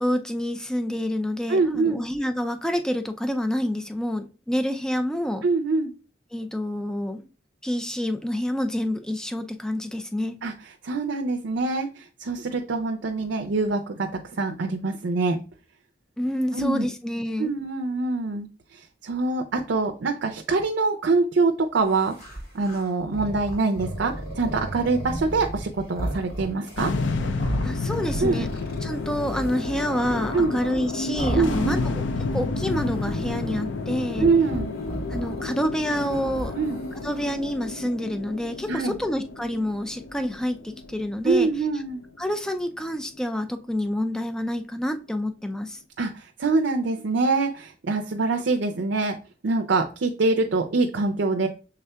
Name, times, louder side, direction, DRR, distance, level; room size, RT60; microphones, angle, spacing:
voice 1, 0.0-5.4 6.3-7.2 7.6-10.4 16.2-17.5 27.6-28.5 28.8-31.9 32.3-34.3 35.1-36.5 37.0-41.5 42.2-45.8, equal, 5° left, 0.3 m, -28 dB
voice 2, 1.5-2.0 5.4-5.9 10.4-10.5 10.8-15.4 16.5-16.9 17.4-22.1 22.5-26.9 28.2-28.5 30.3-30.6 31.3-31.9 34.2-34.8 36.5-36.8 38.7-39.0 41.2-42.0 46.0-49.2 49.4-51.5, right 3 dB, 75° right, 0.5 m, -24 dB
sound 1, 21.9-32.3 32.6-33.6 34.1-37.3, right 1 dB, 55° left, 2.3 m, -35 dB
sound 2, 26.8-43.2, left 3 dB, 80° left, 0.5 m, -31 dB
6.8 x 3.5 x 2.2 m
head